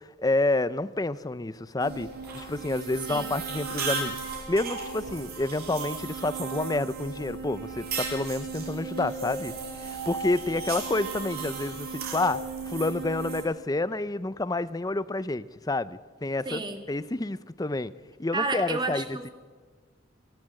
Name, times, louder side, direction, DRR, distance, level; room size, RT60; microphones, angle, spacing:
voice 1, 0.2-9.5 9.8-12.4 12.7-16.6 16.9-17.9 18.2-19.0, left 2 dB, 20° left, 16 dB, 0.5 m, -29 dB
sound 1, 1.8-13.4, right 4 dB, 50° right, 6.0 m, -35 dB
voice 2, 16.5-16.8 18.3-19.3, right 3 dB, 25° right, 6 dB, 1.7 m, -31 dB
27.5 x 12.5 x 7.7 m, 1.4 s
head